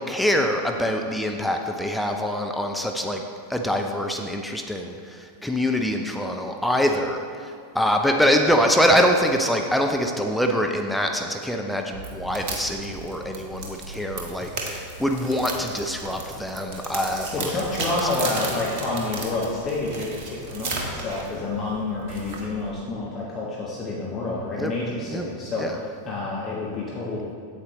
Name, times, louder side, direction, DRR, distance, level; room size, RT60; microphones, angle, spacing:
voice 1, 0.0-3.2 3.5-17.5 17.8-18.1 24.6-24.7 25.1-25.3 25.6-25.8, equal, ahead, 3 dB, 0.5 m, -24 dB
sound 1, 11.9-22.7, right 3 dB, 50° right, 1.3 m, -35 dB
voice 2, 17.3-27.2, left 2 dB, 25° left, -5 dB, 1.2 m, -29 dB
8.6 x 8.0 x 3.1 m, 2.2 s
figure-of-eight pair, 90°, 0 cm